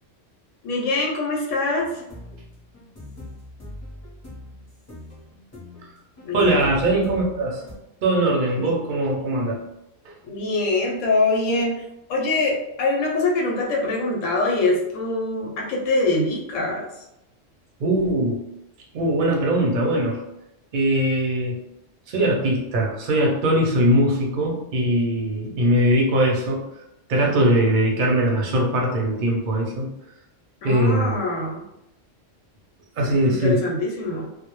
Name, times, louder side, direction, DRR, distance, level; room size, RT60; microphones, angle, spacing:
voice 1, 0.6-2.0 6.2-6.6 8.5-8.7 10.2-11.8 12.1-17.0 30.6-31.6 33.2-34.3, left 2 dB, 85° left, -2 dB, 0.9 m, -24 dB
sound 1, 1.8-7.7, left 1 dB, 20° left, 0.5 m, -41 dB
voice 2, 6.3-7.6 8.0-9.6 10.0-10.1 17.8-18.5 18.9-20.2 20.7-21.7 22.1-26.6 27.1-29.9 30.6-31.1 33.0-33.7, right 1 dB, 55° right, -1 dB, 0.6 m, -21 dB
2.2 x 2.0 x 2.9 m, 0.87 s
omnidirectional pair, 1.3 m